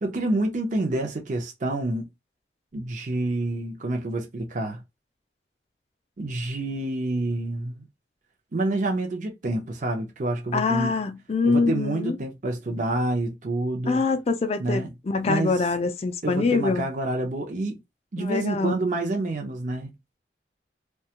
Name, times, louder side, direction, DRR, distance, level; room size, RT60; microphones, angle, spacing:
voice 1, 0.0-2.1 2.7-4.8 6.2-7.8 8.5-11.0 11.4-14.0 14.6-14.9 15.3-15.7 16.2-17.8 18.1-19.9, right 2 dB, 45° right, 0.5 m, -28 dB
voice 2, 10.5-12.2 13.9-16.9 18.2-18.7, left 4 dB, 35° left, 0.4 m, -24 dB
2.7 x 2.2 x 2.8 m
head